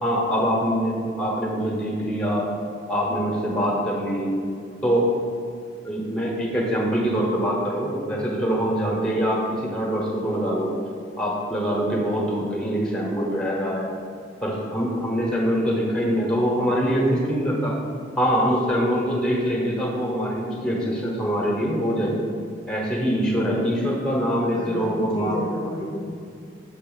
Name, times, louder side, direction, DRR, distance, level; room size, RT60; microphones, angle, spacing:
voice 1, 0.0-2.5 2.9-4.3 4.8-5.1 5.8-10.7 11.2-13.9 14.4-17.7 18.2-22.2 22.7-25.4, equal, 5° left, -3 dB, 1.0 m, -24 dB
voice 2, 24.5-26.0, left 1 dB, 25° left, -4 dB, 0.6 m, -30 dB
6.8 x 2.7 x 5.4 m, 2.3 s
head